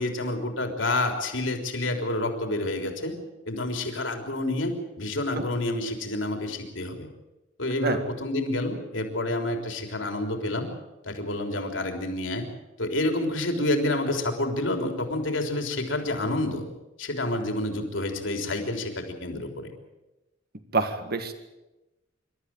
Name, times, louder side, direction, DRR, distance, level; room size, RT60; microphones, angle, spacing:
voice 1, 0.0-3.2 3.5-7.1 7.6-10.7 11.0-12.5 12.8-16.6 17.0-19.7, left 2 dB, 75° left, 4 dB, 3.6 m, -28 dB
voice 2, 20.7-21.3, right 3 dB, 55° right, 8 dB, 1.8 m, -26 dB
26.5 x 13.0 x 8.9 m, 1.0 s
head